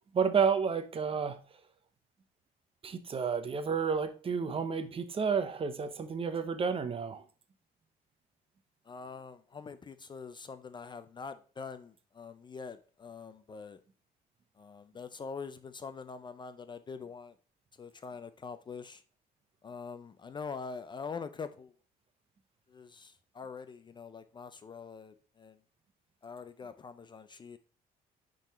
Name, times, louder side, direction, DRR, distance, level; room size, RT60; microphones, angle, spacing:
voice 1, 0.1-1.4 2.8-7.2, right 6 dB, 35° right, 0.8 m, -31 dB
voice 2, 8.9-13.8 14.6-17.3 17.8-19.0 19.6-21.7 22.7-25.6 26.2-27.6, left 5 dB, 25° left, 0.4 m, -44 dB
10.0 x 3.9 x 3.1 m
cardioid pair, 110°, 17 cm